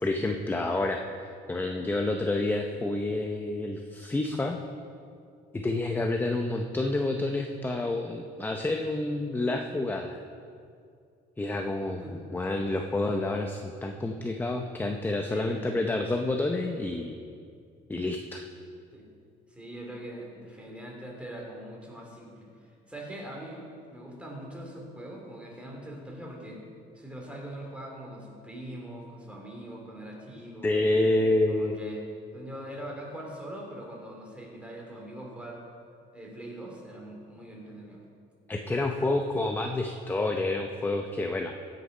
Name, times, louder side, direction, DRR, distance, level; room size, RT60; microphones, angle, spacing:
voice 1, 0.0-4.6 5.5-10.2 11.4-17.2 17.9-18.4 30.6-31.8 38.5-41.5, left 2 dB, 10° left, 4 dB, 0.7 m, -29 dB
voice 2, 15.3-15.6 18.9-19.0 19.5-26.6 26.9-30.7 31.4-32.0 32.3-35.6 36.1-38.0, right 1 dB, 5° right, -1 dB, 3.0 m, -42 dB
15.5 x 6.8 x 5.4 m, 2.3 s
cardioid pair, 110°, 17 cm